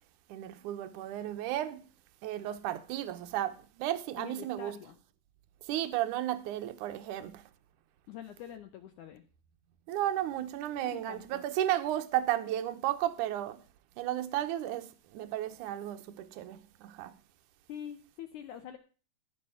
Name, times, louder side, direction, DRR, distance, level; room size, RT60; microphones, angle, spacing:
voice 1, 0.3-1.8 2.2-4.8 5.6-7.5 9.9-13.6 14.0-17.2, right 13 dB, 75° right, 1.9 m, -34 dB
voice 2, 4.2-5.0 8.1-9.2 10.9-11.4 17.7-18.8, left 9 dB, 85° left, 1.7 m, -45 dB
18.0 x 6.3 x 5.7 m
omnidirectional pair, 4.7 m